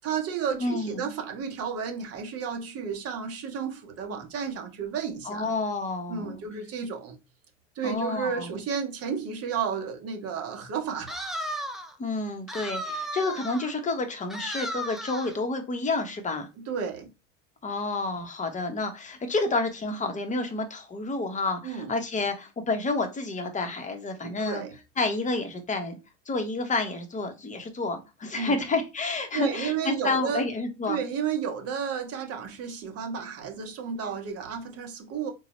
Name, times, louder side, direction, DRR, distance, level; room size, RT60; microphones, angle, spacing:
voice 1, 0.0-5.4 6.1-7.2 7.7-11.6 16.7-17.1 21.6-21.9 24.2-24.7 28.3-28.6 29.3-30.4 30.9-35.3, right 7 dB, 40° right, 1.0 m, -32 dB
voice 2, 0.6-1.1 5.2-6.4 7.8-8.5 12.0-16.5 17.6-24.6 25.0-26.0 26.3-31.0, left 3 dB, 20° left, 0.8 m, -29 dB
sound 1, 11.1-12.0 12.5-13.7 14.3-15.4, equal, ahead, 0.3 m, -34 dB
3.9 x 2.3 x 3.0 m
hypercardioid pair, 90°, 37 cm